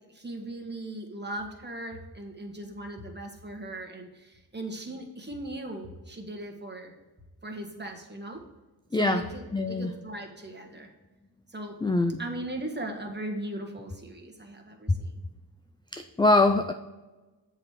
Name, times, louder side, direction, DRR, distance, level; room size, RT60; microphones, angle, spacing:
voice 1, 0.1-6.9 7.4-8.4 9.0-10.9 11.5-11.8 12.2-15.2, right 1 dB, 25° right, 1 dB, 1.4 m, -38 dB
voice 2, 8.9-9.2 9.5-9.9 11.8-12.2 15.9-16.7, left 2 dB, 10° left, 6 dB, 0.3 m, -23 dB
7.4 x 4.6 x 4.8 m, 1.2 s
cardioid pair, 65°, 43 cm